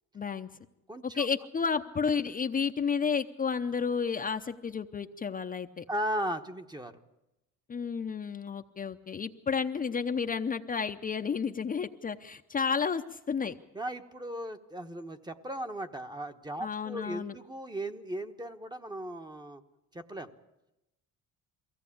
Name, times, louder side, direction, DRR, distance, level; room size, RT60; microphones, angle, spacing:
voice 1, 0.1-0.5 1.0-5.8 7.7-13.6 16.6-17.3, left 6 dB, 25° left, 5 dB, 0.7 m, -31 dB
voice 2, 0.9-1.4 5.9-7.0 13.7-19.6 19.9-20.3, right 1 dB, 15° right, 7 dB, 1.1 m, -37 dB
23.0 x 16.5 x 8.6 m, 0.95 s
cardioid pair, 125°, 30 cm